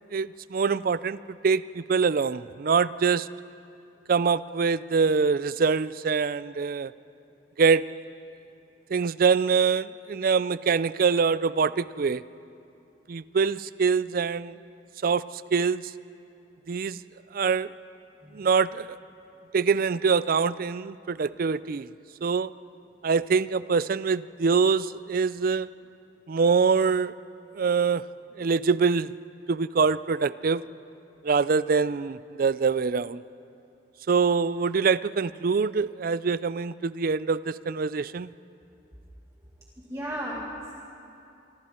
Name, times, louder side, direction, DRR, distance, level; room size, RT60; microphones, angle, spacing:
voice 1, 0.1-3.3 4.1-6.9 7.6-7.9 8.9-12.2 13.1-14.6 15.0-15.2 15.5-15.9 16.7-17.0 17.3-17.7 18.3-18.9 19.5-21.9 22.2-22.5 23.0-25.7 26.3-27.1 27.5-28.0 28.4-29.1 29.5-30.6 31.2-33.2 34.1-38.3, right 5 dB, 55° right, 17 dB, 0.4 m, -24 dB
voice 2, 39.9-40.7, equal, 20° right, -4 dB, 2.0 m, -34 dB
25.5 x 25.0 x 4.4 m, 2.7 s
head